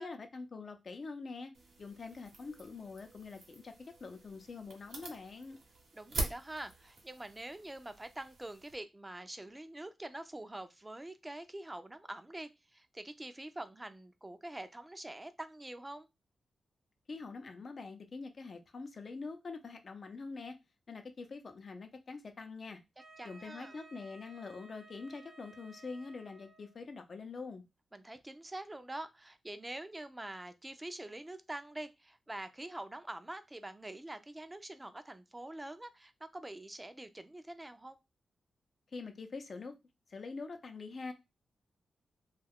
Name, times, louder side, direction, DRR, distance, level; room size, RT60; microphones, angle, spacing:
voice 1, 0.0-1.5 1.8-5.6 17.1-20.6 20.9-22.8 23.2-27.6 38.9-39.7 40.1-41.1, left 4 dB, 55° left, 0.6 m, -45 dB
sound 1, 1.5-8.8, right 3 dB, 80° right, 0.8 m, -45 dB
voice 2, 5.9-16.1 23.2-23.7 27.9-38.0, right 1 dB, 20° right, 0.5 m, -45 dB
Wind instrument woodwind instrument, 23.0-26.8, right 2 dB, 50° right, 0.8 m, -57 dB
2.3 x 2.2 x 3.4 m
supercardioid pair, 45°, 0 cm